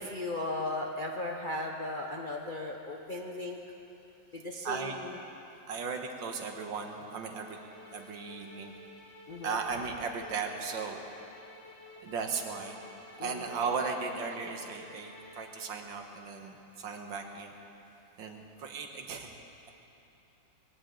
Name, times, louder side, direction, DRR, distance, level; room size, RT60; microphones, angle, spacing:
voice 1, 0.0-3.6 4.3-5.1 9.3-9.6 13.2-13.4, left 2 dB, 45° left, 0 dB, 0.6 m, -36 dB
voice 2, 4.6-5.0 5.7-7.6 7.9-8.7 9.4-11.0 12.0-12.8 13.2-17.5 18.2-19.3, right 5 dB, 75° right, 4 dB, 1.9 m, -36 dB
sound 1, 7.0-15.9, left 2 dB, 85° left, 3.8 m, -52 dB
21.0 x 17.5 x 3.8 m, 2.9 s
omnidirectional pair, 2.1 m